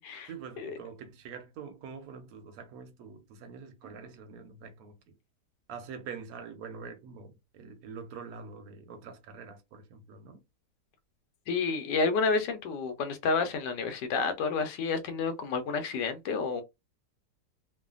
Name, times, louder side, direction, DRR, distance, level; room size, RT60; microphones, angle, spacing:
voice 1, 0.3-5.1 5.7-10.4, right 6 dB, 70° right, 1.0 m, -45 dB
voice 2, 11.5-16.6, left 4 dB, 80° left, 1.2 m, -30 dB
3.1 x 2.1 x 2.4 m
omnidirectional pair, 1.8 m